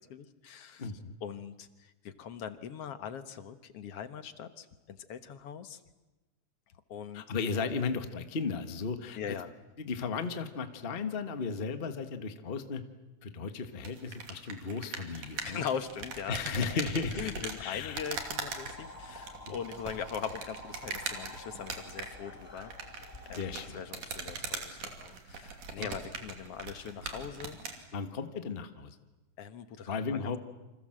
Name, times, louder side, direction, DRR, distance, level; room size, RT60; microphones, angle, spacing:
voice 1, 0.1-0.9 1.2-5.8 6.9-7.2 9.2-9.5 15.4-16.8 17.1-22.9 23.3-23.4 23.7-27.6 29.4-30.4, left 7 dB, 60° left, 10 dB, 1.9 m, -41 dB
voice 2, 0.8-1.2 7.1-9.4 9.8-12.8 13.2-15.6 16.3-18.0 19.4-19.6 23.3-23.8 25.8-25.9 27.9-29.0 29.9-30.4, left 5 dB, 75° left, 8 dB, 0.5 m, -35 dB
sound 1, 13.8-27.8, right 5 dB, 75° right, 4.2 m, -41 dB
sound 2, 15.8-23.7, left 1 dB, 10° left, 5.5 m, -50 dB
28.5 x 26.0 x 7.7 m, 1.1 s
omnidirectional pair, 3.7 m